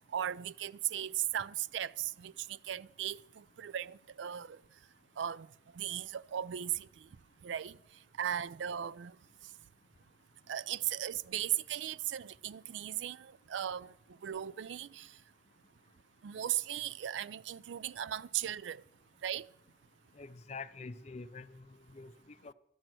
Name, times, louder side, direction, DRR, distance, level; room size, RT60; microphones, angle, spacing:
voice 1, 0.1-4.6 5.2-5.5 5.7-6.9 7.4-7.8 8.2-9.1 10.5-13.9 14.2-15.1 16.2-18.8 19.2-19.5, right 10 dB, 90° right, 0.4 m, -37 dB
voice 2, 20.1-22.5, left 4 dB, 40° left, 0.5 m, -47 dB
12.5 x 6.1 x 9.0 m
head